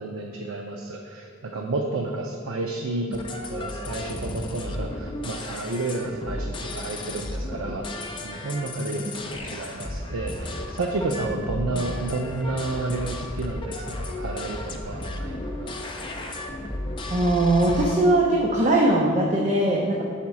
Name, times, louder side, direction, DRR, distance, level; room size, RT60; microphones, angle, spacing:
voice 1, 0.0-3.2 3.5-15.8, right 2 dB, 85° right, 2 dB, 0.5 m, -31 dB
sound 1, 3.1-17.9, left 1 dB, 25° left, 0.6 m, -34 dB
voice 2, 17.1-20.0, right 1 dB, 35° right, -1 dB, 0.6 m, -21 dB
6.2 x 4.3 x 5.9 m, 2.6 s
head